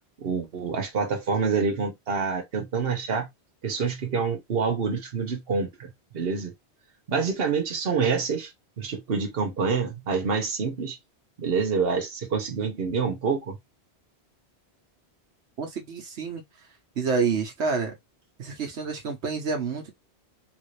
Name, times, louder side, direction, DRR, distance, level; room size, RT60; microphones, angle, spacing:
voice 1, 0.2-3.3 3.6-6.5 7.1-8.5 8.8-11.0 11.4-13.6, right 5 dB, 60° right, 1.2 m, -27 dB
voice 2, 15.6-16.4 17.0-17.9 18.4-19.9, right 5 dB, 85° right, 1.2 m, -28 dB
3.5 x 2.6 x 3.2 m
omnidirectional pair, 1.1 m